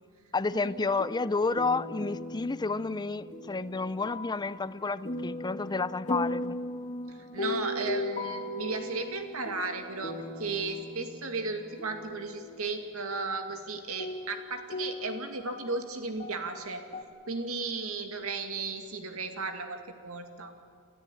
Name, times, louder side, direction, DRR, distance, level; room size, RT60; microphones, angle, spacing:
voice 1, 0.3-6.6, left 3 dB, 20° left, 0.5 m, -30 dB
sound 1, 0.6-12.6 13.5-13.6 14.0-17.0, left 2 dB, 35° left, 1.9 m, -38 dB
voice 2, 7.1-16.8 17.3-20.5, right 3 dB, 75° right, 2.4 m, -35 dB
28.5 x 14.0 x 10.0 m
head